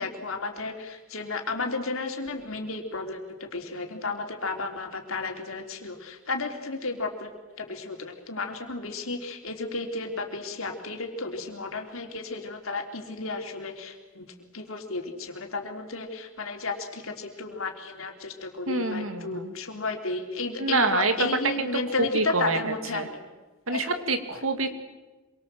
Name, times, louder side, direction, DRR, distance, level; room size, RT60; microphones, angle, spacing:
voice 1, 0.0-7.3 7.6-23.2 23.7-23.8 24.3-24.4, left 3 dB, 85° left, 3 dB, 3.6 m, -33 dB
voice 2, 18.7-19.5 20.6-21.1 21.6-21.7 22.1-23.1 23.7-24.7, right 3 dB, 85° right, 8 dB, 2.5 m, -27 dB
26.5 x 23.5 x 7.8 m, 1.2 s
head